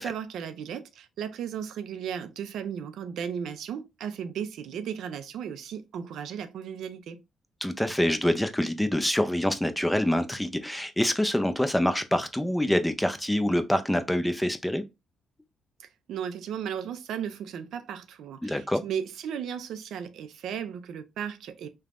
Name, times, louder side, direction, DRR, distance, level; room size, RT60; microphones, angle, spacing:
voice 1, 0.0-7.2 16.1-21.7, right 8 dB, 75° right, 0.3 m, -35 dB
voice 2, 7.6-14.8 18.4-18.8, left 1 dB, 5° left, 0.4 m, -26 dB
3.2 x 2.1 x 2.4 m
cardioid pair, 90°, 0 cm